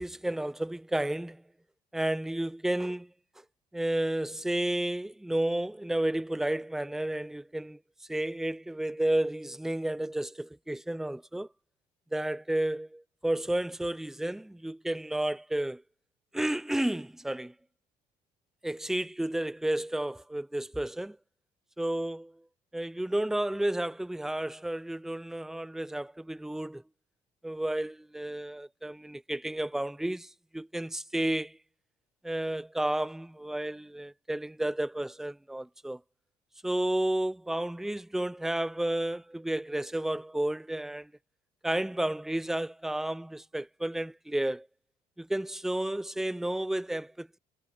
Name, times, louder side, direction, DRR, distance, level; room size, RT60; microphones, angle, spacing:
voice 1, 0.0-1.4 1.9-3.1 3.7-7.8 8.1-11.5 12.1-15.8 16.3-17.5 18.6-21.2 21.8-22.3 22.7-26.8 27.4-31.6 32.2-36.0 36.6-41.1 41.6-44.7 45.2-47.4, right 1 dB, ahead, 0.4 m, -32 dB
cardioid pair, 110°, 17 cm